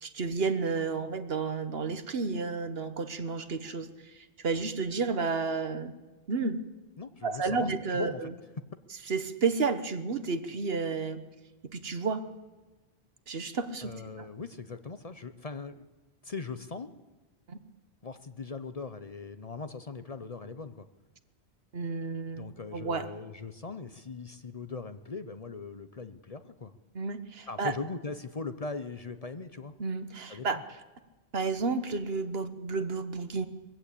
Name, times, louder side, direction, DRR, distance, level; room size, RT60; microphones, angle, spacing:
voice 1, 0.0-3.9 4.4-5.9 6.3-6.6 7.2-8.3 9.1-11.2 11.7-12.3 13.3-13.9 14.2-14.3 17.5-17.6 21.7-22.5 22.7-23.1 26.9-27.7 29.8-30.6 31.3-33.5, right 4 dB, 65° right, 11 dB, 1.4 m, -31 dB
voice 2, 7.0-8.2 13.8-15.8 16.2-16.9 18.0-20.9 22.3-26.7 27.5-29.7 30.3-30.6, left 4 dB, 40° left, 11 dB, 0.8 m, -40 dB
21.5 x 15.0 x 8.5 m, 1.2 s
omnidirectional pair, 1.1 m